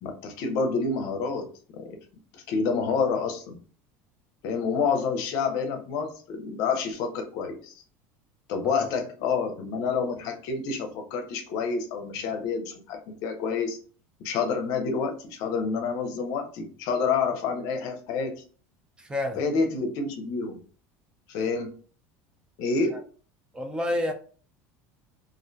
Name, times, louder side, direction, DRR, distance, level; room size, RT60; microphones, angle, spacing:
voice 1, 0.0-1.5 1.7-2.0 2.3-3.6 4.4-7.7 8.5-13.8 14.2-18.3 19.4-20.5 21.3-21.7 22.6-23.0, left 5 dB, 65° left, 0.6 m, -28 dB
voice 2, 19.0-19.4 22.9-23.0 23.5-24.1, left 1 dB, 15° right, 0.3 m, -29 dB
2.4 x 2.1 x 2.5 m
cardioid pair, 135°, 7 cm